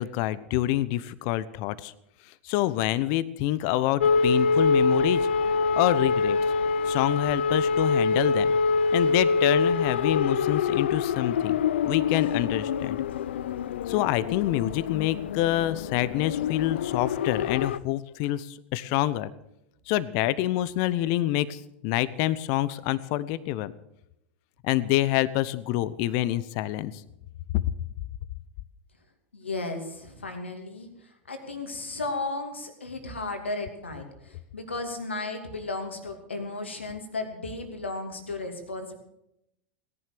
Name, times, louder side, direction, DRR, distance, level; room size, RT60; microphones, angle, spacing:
voice 1, 0.0-1.9 2.4-5.3 5.7-6.4 6.9-8.5 8.9-11.6 11.8-13.0 13.9-19.3 19.9-23.7 24.6-26.9 27.5-27.6, left 14 dB, 55° left, 17 dB, 0.9 m, -27 dB
sound 1, 4.0-17.8, left 4 dB, 75° left, 0.5 m, -25 dB
voice 2, 29.3-30.9 31.3-38.9, left 3 dB, 90° left, 5 dB, 2.7 m, -34 dB
17.5 x 11.0 x 6.8 m, 0.83 s
hypercardioid pair, 90°, 6 cm